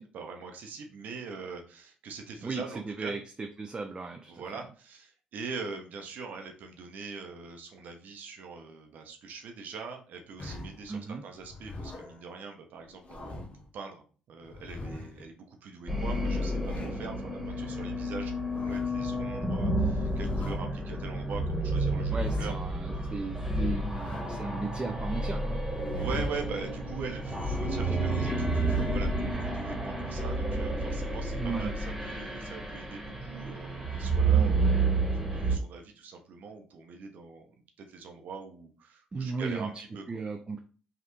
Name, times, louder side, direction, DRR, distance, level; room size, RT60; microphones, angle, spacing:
voice 1, 0.1-3.2 4.3-13.5 13.7-22.5 25.9-34.9 35.1-40.0, right 4 dB, 65° right, 4 dB, 0.7 m, -42 dB
voice 2, 2.4-4.4 10.9-11.2 22.1-25.6 31.3-31.7 39.1-39.7 40.1-40.6, right 4 dB, 30° right, 4 dB, 0.4 m, -36 dB
sound 1, 10.4-10.9 11.4-12.2 12.8-13.7 14.4-15.3 16.3-17.1 18.3-19.1 20.0-20.7 21.9-22.8 23.8-24.7 25.7-26.6 27.1-27.7 28.2-29.1, left 2 dB, 40° left, 0.7 m, -44 dB
sound 2, 15.9-35.6, right 2 dB, 5° right, 1.4 m, -30 dB
3.3 x 2.4 x 3.0 m, 0.39 s
hypercardioid pair, 55°, 3 cm